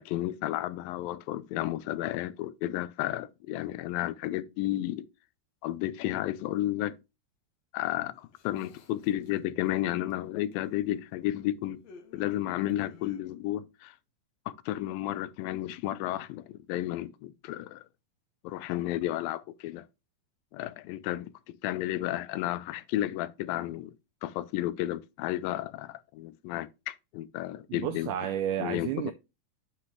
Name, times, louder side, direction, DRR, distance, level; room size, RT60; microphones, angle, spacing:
voice 1, 0.0-5.1 5.6-7.0 7.7-11.8 12.1-14.0 14.5-17.8 18.4-19.9 20.5-23.9 24.2-28.1 28.6-29.1, left 14 dB, 85° left, 2.4 m, -32 dB
sound 1, 7.9-9.7 10.1-11.1 11.8-13.2, left 4 dB, 65° left, 1.9 m, -56 dB
voice 2, 27.7-29.1, right 11 dB, 80° right, 1.9 m, -31 dB
9.6 x 5.9 x 3.0 m
omnidirectional pair, 4.0 m